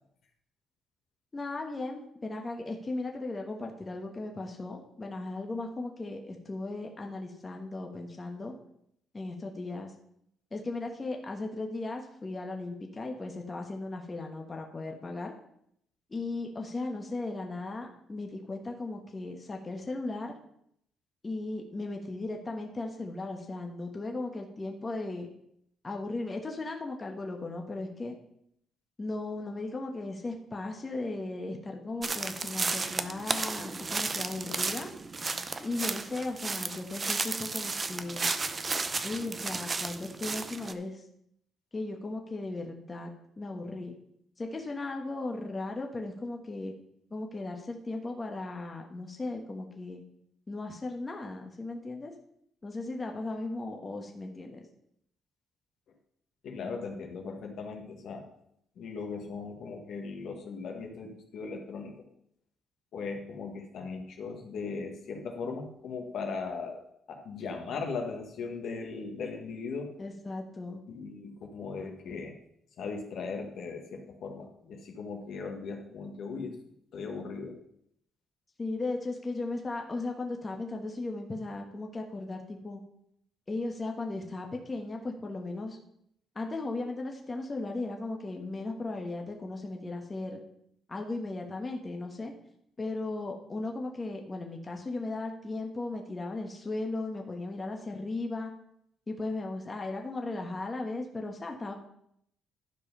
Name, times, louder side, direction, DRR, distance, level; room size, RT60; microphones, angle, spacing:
voice 1, 1.3-8.5 9.1-9.9 10.5-15.3 16.1-20.3 21.2-25.3 25.8-28.1 29.0-34.9 35.6-38.3 39.0-41.0 41.7-43.1 43.4-43.9 44.4-46.7 47.1-50.0 50.5-52.1 52.6-54.7 70.0-70.8 78.6-82.8 83.5-85.8 86.3-90.4 90.9-92.3 92.8-98.5 99.1-101.7, left 2 dB, 25° left, 2 dB, 1.4 m, -36 dB
sound 1, 32.0-40.7, right 4 dB, 35° right, 0.7 m, -33 dB
voice 2, 56.4-58.2 58.7-61.9 62.9-66.8 67.1-70.0 70.9-72.3 72.8-76.6 76.9-77.6, left 4 dB, 70° left, 2 dB, 1.7 m, -38 dB
12.0 x 4.9 x 5.5 m, 0.73 s
cardioid pair, 90°, 0 cm